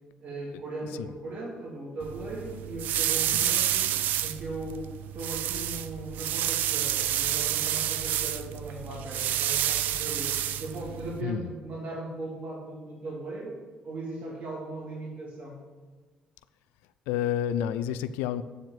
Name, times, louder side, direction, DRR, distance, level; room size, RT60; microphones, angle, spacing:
voice 1, 0.2-3.9 4.2-4.9 5.1-13.6 13.8-15.6, right 2 dB, 55° right, -4 dB, 2.9 m, -38 dB
sound 1, 2.0-11.2, right 12 dB, 75° right, 0.4 m, -29 dB
voice 2, 17.1-18.4, left 10 dB, 85° left, 13 dB, 0.4 m, -29 dB
9.4 x 4.6 x 7.6 m, 1.4 s
supercardioid pair, 65°, 3 cm